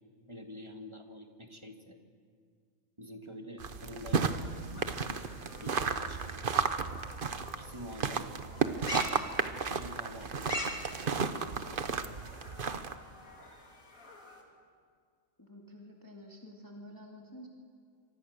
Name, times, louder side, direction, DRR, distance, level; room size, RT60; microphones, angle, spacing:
voice 1, 0.3-2.0 3.0-4.9 5.6-6.4 7.5-8.7 9.7-10.6 11.0-11.8, equal, 20° right, 4 dB, 1.9 m, -47 dB
sound 1, 3.6-12.9, right 5 dB, 40° right, 1.1 m, -33 dB
sound 2, 4.1-14.4, left 1 dB, 75° left, 3.8 m, -45 dB
voice 2, 15.4-17.5, left 1 dB, 15° left, -1 dB, 2.2 m, -50 dB
28.0 x 24.5 x 6.6 m, 2.1 s
omnidirectional pair, 1.5 m